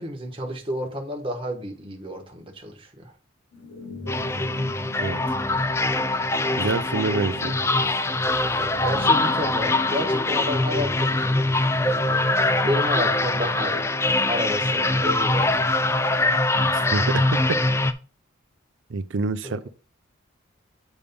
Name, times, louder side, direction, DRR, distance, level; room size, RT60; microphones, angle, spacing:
voice 1, 0.0-3.1 6.4-6.7 8.6-11.5 12.6-15.5 19.4-19.7, left 1 dB, 25° right, 1.3 m, -31 dB
sound 1, 3.5-13.8, left 1 dB, 65° left, 1.2 m, -42 dB
sound 2, 4.1-17.9, left 2 dB, 15° left, 0.3 m, -23 dB
voice 2, 6.5-7.6 16.9-17.6 18.9-19.7, right 3 dB, 70° right, 0.5 m, -26 dB
8.1 x 3.4 x 5.3 m
head